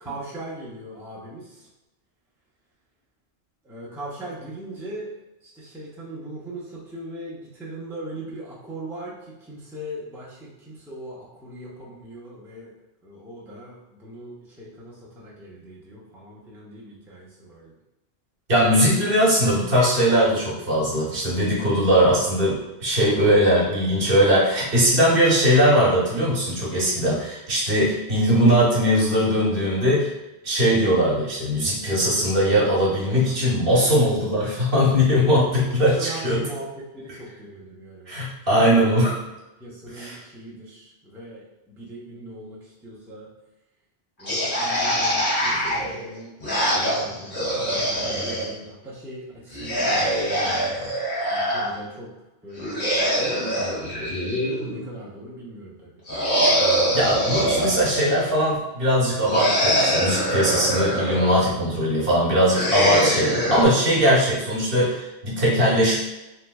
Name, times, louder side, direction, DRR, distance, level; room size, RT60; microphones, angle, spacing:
voice 1, 0.0-1.7 3.6-5.1 5.4-12.8 13.0-17.7 34.5-34.6 35.8-38.2 38.7-39.0 39.6-43.3 44.2-50.9 51.3-52.1 52.4-54.3 54.7-55.9, right 1 dB, 5° right, -6 dB, 0.5 m, -40 dB
voice 2, 18.5-30.1 30.4-36.4 38.1-39.2 39.9-40.2 56.9-66.0, equal, 60° right, -5 dB, 1.2 m, -20 dB
sound 1, 44.2-48.5 49.5-51.7 52.6-54.9 56.1-58.3 59.3-61.4 62.5-63.6, equal, 50° left, 1.5 m, -23 dB
3.2 x 3.1 x 2.2 m, 0.98 s
omnidirectional pair, 1.1 m